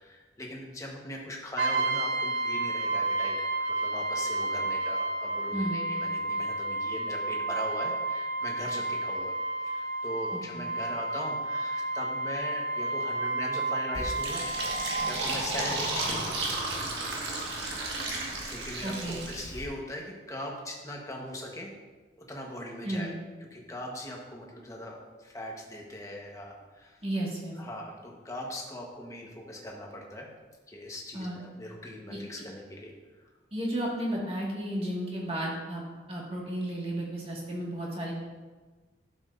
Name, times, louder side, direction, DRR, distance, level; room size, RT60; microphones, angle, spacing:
voice 1, 0.0-9.3 9.6-14.4 14.7-16.5 18.5-21.8 22.3-23.1 23.5-27.0 27.6-30.3 30.7-33.3, left 1 dB, 15° left, -1 dB, 1.2 m, -40 dB
Brass instrument, 1.6-15.2, right 2 dB, 80° right, 0.7 m, -31 dB
voice 2, 5.5-5.9 10.3-10.6 18.8-19.2 22.8-23.2 27.0-27.6 31.1-31.4 32.1-32.2 33.5-35.8 36.1-38.1, right 1 dB, 30° right, -3 dB, 1.9 m, -33 dB
Fill (with liquid), 13.9-19.6, right 2 dB, 65° right, 1.7 m, -33 dB
11.0 x 7.2 x 2.6 m, 1.3 s
head